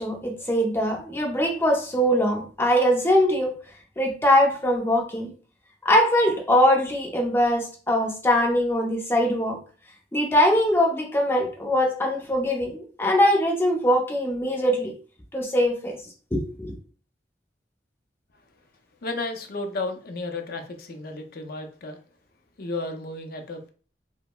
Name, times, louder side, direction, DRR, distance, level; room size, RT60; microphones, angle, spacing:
voice 1, 0.0-3.5 4.0-5.3 5.8-9.6 10.1-14.9 15.3-16.0 16.3-16.8, equal, 15° left, -1 dB, 0.6 m, -22 dB
voice 2, 19.0-22.0 22.6-23.7, left 2 dB, 55° left, 6 dB, 0.5 m, -33 dB
4.9 x 2.0 x 2.2 m, 0.40 s
head